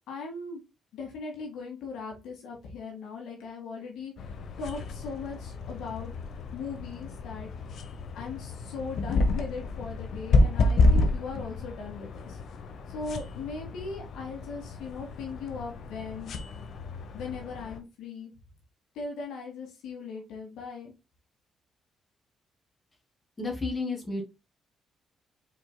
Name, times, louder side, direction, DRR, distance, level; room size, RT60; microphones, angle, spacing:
voice 1, 0.1-0.6 0.9-6.1 6.5-7.5 8.1-12.4 12.9-16.3 17.1-18.3 18.9-20.9, left 4 dB, 85° left, 0 dB, 1.9 m, -39 dB
sound 1, 4.2-17.8, left 2 dB, 65° left, 0.9 m, -30 dB
voice 2, 23.4-24.2, left 3 dB, 25° left, 1 dB, 2.4 m, -31 dB
5.1 x 4.4 x 2.2 m, 0.25 s
cardioid pair, 90°, 0 cm